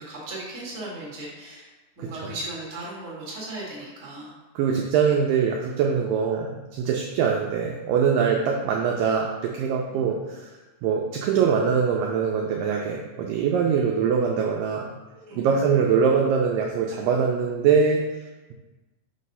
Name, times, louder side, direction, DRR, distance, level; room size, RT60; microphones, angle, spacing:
voice 1, 0.0-1.7 2.0-4.3 9.9-10.1 15.1-15.6, right 2 dB, 30° right, -6 dB, 1.3 m, -37 dB
voice 2, 4.6-10.5 10.8-14.8 15.4-18.0, right 6 dB, 80° right, 0 dB, 2.0 m, -23 dB
6.5 x 3.2 x 5.4 m, 1.2 s
omnidirectional pair, 4.5 m